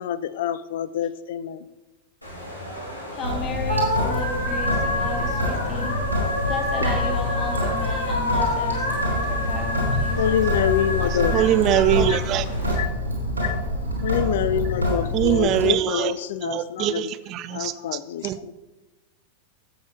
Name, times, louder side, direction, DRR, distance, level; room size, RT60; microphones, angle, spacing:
voice 1, 0.0-1.7 7.0-7.2 10.2-11.5 11.9-12.2 12.8-12.9 13.4-13.6 14.0-17.1 17.5-18.5, left 10 dB, 55° left, 15 dB, 0.5 m, -26 dB
sound 1, 2.2-12.7, left 1 dB, 85° left, 2.3 m, -29 dB
voice 2, 3.1-5.9 6.5-10.4, left 3 dB, 30° left, 2 dB, 2.1 m, -33 dB
Sink (filling or washing) / Drip, 3.2-15.7, left 1 dB, 85° right, 2.9 m, -26 dB
voice 3, 11.0-12.5 15.1-16.2 16.4-18.4, right 11 dB, 35° right, 15 dB, 0.5 m, -23 dB
12.0 x 8.0 x 3.4 m, 1.1 s
figure-of-eight pair, 90°, 0 cm